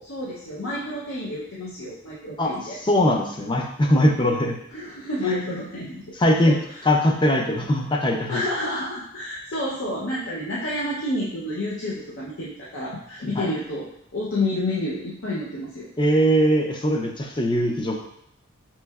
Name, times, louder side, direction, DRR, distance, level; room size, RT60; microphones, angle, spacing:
voice 1, 0.0-2.8 4.7-6.1 6.4-6.8 8.3-15.9, left 1 dB, 65° left, -6 dB, 0.6 m, -29 dB
voice 2, 2.4-4.6 6.2-6.5 6.8-8.4 13.4-13.5 16.0-18.0, equal, 20° left, 2 dB, 0.4 m, -21 dB
5.3 x 3.1 x 2.3 m, 0.75 s
head